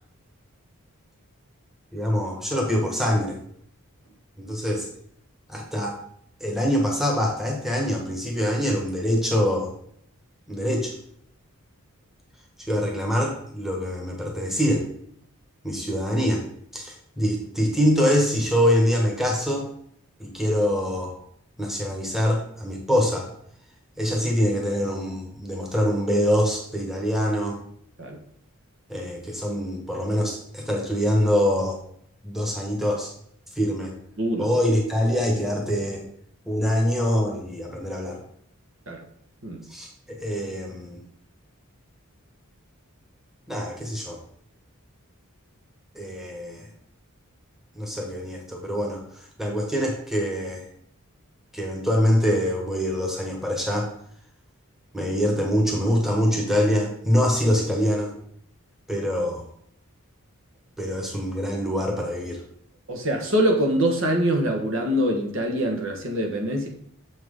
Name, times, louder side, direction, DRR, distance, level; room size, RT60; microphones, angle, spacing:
voice 1, 1.9-3.4 4.4-4.9 5.5-6.0 6.4-9.7 10.5-11.0 12.7-14.9 15.6-16.4 16.7-19.7 20.2-21.2 21.6-23.3 24.0-27.6 28.9-31.8 32.2-33.1 33.5-33.9 34.4-36.0 36.5-38.2 39.7-41.0 43.5-44.2 45.9-46.7 47.7-50.6 51.5-53.9 54.9-58.1 58.9-59.5 60.8-62.4, equal, ahead, 0 dB, 1.3 m, -24 dB
voice 2, 34.2-34.5 38.9-39.0 39.4-39.6 62.9-66.7, equal, 60° right, 3 dB, 1.3 m, -24 dB
7.4 x 6.0 x 3.6 m, 0.67 s
head